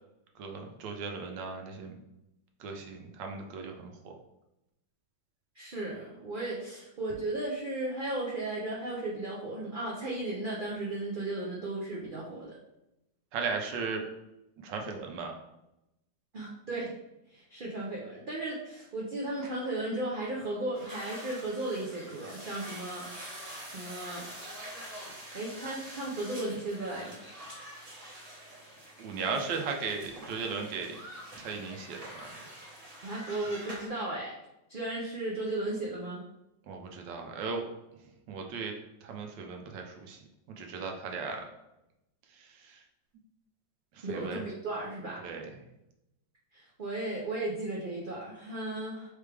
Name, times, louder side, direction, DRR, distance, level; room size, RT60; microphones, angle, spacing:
voice 1, 0.4-2.0 2.6-4.1 13.3-14.0 14.6-15.3 29.0-31.0 31.3-32.3 36.7-37.7 38.3-38.7 39.0-40.2 40.6-41.4 42.4-42.8 44.0-44.4 45.2-45.5, right 5 dB, 80° right, 3 dB, 1.3 m, -36 dB
voice 2, 5.6-12.6 16.3-16.9 17.3-23.0 23.4-24.3 25.3-27.2 33.0-34.3 34.7-36.2 44.0-45.2 46.5-49.1, right 2 dB, 60° right, -5 dB, 0.5 m, -35 dB
sound 1, 20.7-33.9, right 1 dB, 25° right, 1.0 m, -46 dB
4.4 x 3.4 x 3.3 m, 0.89 s
omnidirectional pair, 1.9 m